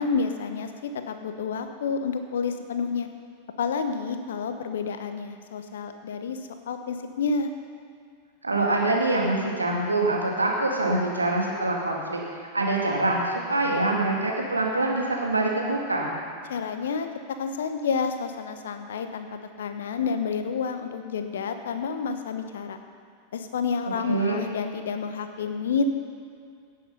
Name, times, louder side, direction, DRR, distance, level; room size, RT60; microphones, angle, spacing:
voice 1, 0.0-3.1 3.6-6.4 6.7-7.5 16.5-22.8 23.3-25.8, left 5 dB, 60° left, 7 dB, 1.0 m, -29 dB
voice 2, 8.4-16.1 24.0-24.4, right 2 dB, 80° right, -1 dB, 2.2 m, -25 dB
17.0 x 7.8 x 5.5 m, 2.3 s
figure-of-eight pair, 90°, 0 cm